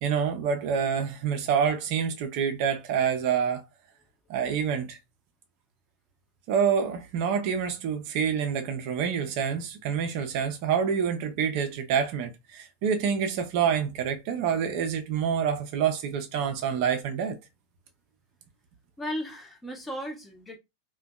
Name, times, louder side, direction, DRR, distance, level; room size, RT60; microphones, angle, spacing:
voice 1, 0.0-3.6 4.3-5.0 6.5-17.4, right 7 dB, 45° right, 0.4 m, -27 dB
voice 2, 19.0-20.6, equal, 10° left, 0.6 m, -35 dB
2.6 x 2.1 x 2.3 m
figure-of-eight pair, 90°, 0 cm